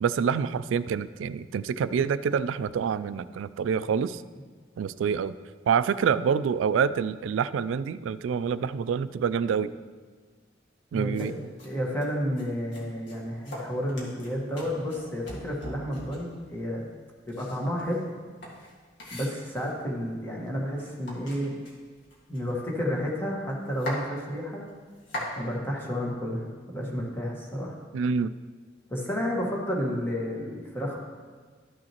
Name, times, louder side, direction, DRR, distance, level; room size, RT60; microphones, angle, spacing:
voice 1, 0.0-4.2 4.8-5.3 5.7-9.7 10.9-11.4 27.9-28.3, right 6 dB, 75° right, 15 dB, 0.3 m, -27 dB
voice 2, 10.9-11.3 11.6-16.9 17.3-18.0 19.1-21.6 22.3-24.7 25.4-27.8 28.9-31.0, equal, 10° left, -3 dB, 1.4 m, -31 dB
sound 1, 11.1-11.3 11.6-11.7 12.0-12.4 12.7-16.3 17.2-19.8 20.5-20.6 20.8-22.9 23.2-23.3 23.5-24.0 24.7-25.3, left 1 dB, 65° left, 1.9 m, -40 dB
13.0 x 6.3 x 3.0 m, 1.5 s
head